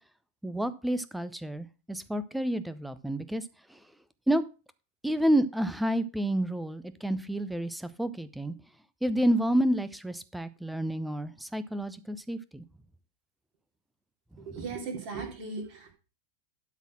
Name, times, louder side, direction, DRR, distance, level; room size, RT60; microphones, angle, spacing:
voice 1, 0.4-3.4 3.7-3.8 4.3-4.4 5.0-8.5 9.0-12.6, right 1 dB, 5° right, 15 dB, 0.7 m, -29 dB
voice 2, 14.4-15.9, right 4 dB, 40° right, 2 dB, 3.1 m, -37 dB
12.0 x 4.1 x 6.1 m, 0.33 s
figure-of-eight pair, 90°, 0 cm